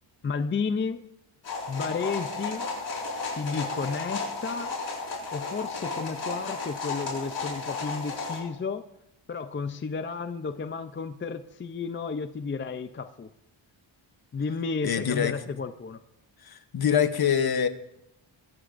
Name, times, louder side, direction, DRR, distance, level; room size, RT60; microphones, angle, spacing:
voice 1, 0.2-1.0 1.7-2.7 3.4-4.7 5.3-8.8 9.3-13.3 14.3-16.0, left 5 dB, 25° left, 0.5 m, -32 dB
sound 1, 1.4-8.4, left 3 dB, 65° left, 5.2 m, -33 dB
voice 2, 14.8-15.4 16.5-17.7, left 8 dB, 50° left, 1.0 m, -25 dB
22.5 x 14.5 x 2.5 m
wide cardioid pair, 125°, 49 cm